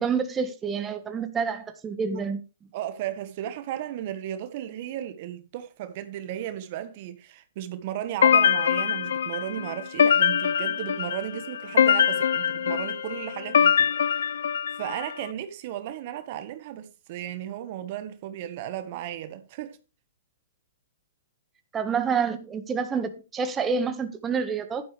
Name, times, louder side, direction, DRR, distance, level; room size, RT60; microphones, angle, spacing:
voice 1, 0.0-2.4 21.7-24.9, right 5 dB, 20° right, 1.6 m, -28 dB
voice 2, 2.7-14.4 14.7-19.8, right 11 dB, 50° right, 1.4 m, -35 dB
sound 1, 8.2-15.1, left 8 dB, 75° left, 0.5 m, -23 dB
11.5 x 10.0 x 3.4 m
hypercardioid pair, 125°, 0 cm